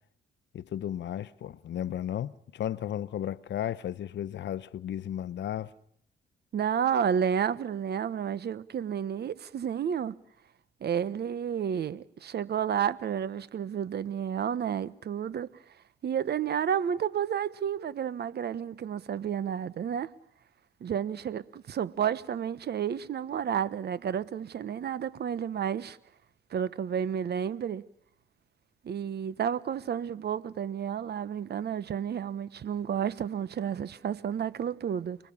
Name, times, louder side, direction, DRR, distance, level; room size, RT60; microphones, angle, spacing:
voice 1, 0.5-5.7, left 10 dB, 65° left, 1.0 m, -34 dB
voice 2, 6.5-10.2 10.8-15.5 16.0-20.1 20.8-26.0 26.5-27.8 28.8-35.2, right 8 dB, 55° right, 1.2 m, -31 dB
30.0 x 21.0 x 7.2 m
cardioid pair, 90°, 20 cm